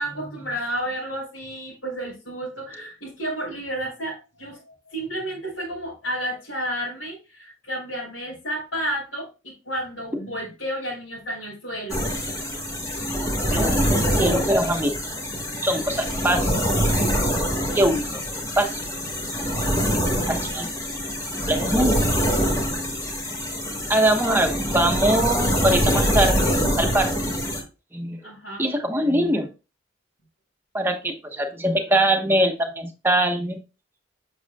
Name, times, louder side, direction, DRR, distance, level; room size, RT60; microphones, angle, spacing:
voice 1, 0.0-12.1 23.9-24.0 28.2-28.7, right 1 dB, 80° left, -8 dB, 4.5 m, -31 dB
sound 1, 11.9-27.6, equal, 15° left, 1.8 m, -24 dB
voice 2, 13.5-14.9 15.6-16.5 17.7-18.2 18.6-18.8 19.5-19.7 20.3-20.7 21.5-22.4 23.9-27.1 27.9-28.2 28.6-29.5 30.7-33.6, right 1 dB, 10° right, 3 dB, 1.1 m, -23 dB
8.0 x 6.4 x 2.3 m, 0.30 s
head